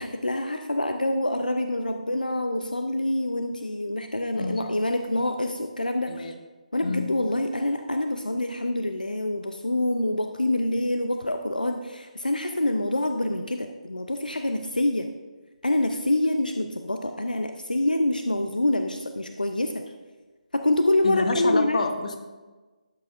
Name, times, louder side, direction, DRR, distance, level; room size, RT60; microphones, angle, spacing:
voice 1, 0.0-6.3 6.7-15.1 15.6-19.8 20.5-21.8, left 1 dB, 90° left, 6 dB, 0.6 m, -26 dB
voice 2, 21.0-22.1, left 3 dB, 60° left, 6 dB, 1.0 m, -28 dB
12.0 x 7.6 x 2.5 m, 1.3 s
figure-of-eight pair, 150°, 4 cm